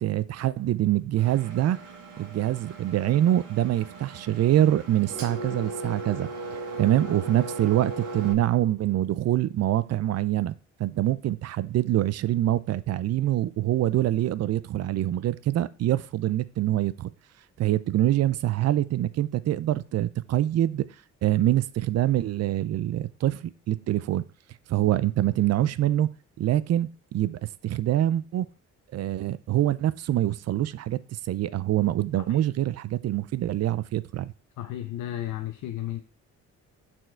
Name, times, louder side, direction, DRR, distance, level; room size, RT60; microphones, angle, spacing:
voice 1, 0.0-1.8 2.2-10.5 10.8-17.1 17.6-20.9 21.2-24.2 24.7-26.1 26.4-28.5 28.9-34.3, right 13 dB, 55° right, 0.5 m, -25 dB
Engine, 1.2-8.3, right 2 dB, 90° right, 1.6 m, -38 dB
voice 2, 34.6-36.0, left 13 dB, 80° left, 0.6 m, -33 dB
6.4 x 4.5 x 4.5 m
cardioid pair, 90°, 30 cm